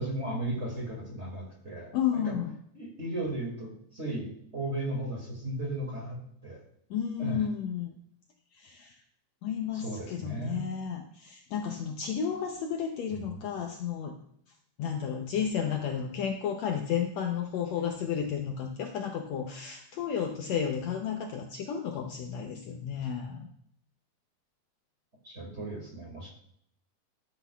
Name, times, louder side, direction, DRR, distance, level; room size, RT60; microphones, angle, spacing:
voice 1, 0.0-2.3 2.8-6.6 7.2-7.4 9.7-10.6 13.1-13.4 25.2-26.3, right 1 dB, 25° right, -2 dB, 2.2 m, -36 dB
voice 2, 1.9-2.5 6.9-7.9 8.5-9.0 9.4-14.2 14.8-23.5, left 8 dB, 70° left, 3 dB, 1.7 m, -32 dB
13.5 x 9.9 x 2.3 m, 0.68 s
omnidirectional pair, 3.7 m